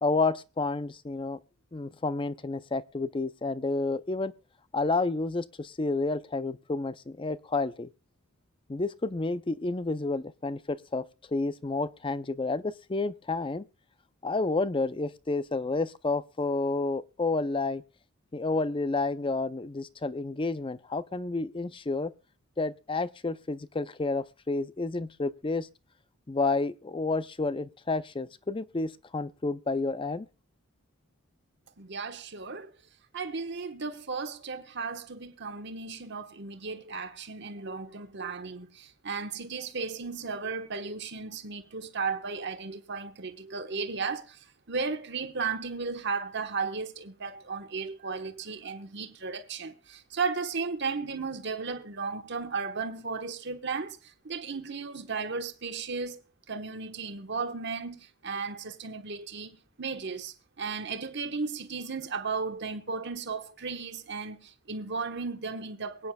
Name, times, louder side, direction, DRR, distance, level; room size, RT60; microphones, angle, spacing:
voice 1, 0.0-1.4 1.7-4.3 4.7-7.9 8.7-11.0 11.3-13.7 14.2-17.8 18.3-22.1 22.6-25.7 26.3-30.3, left 3 dB, 25° left, 0.5 m, -30 dB
voice 2, 31.8-32.7 33.1-44.4 44.7-56.2 56.5-66.1, right 4 dB, 50° right, 1.3 m, -35 dB
23.5 x 9.3 x 2.3 m
head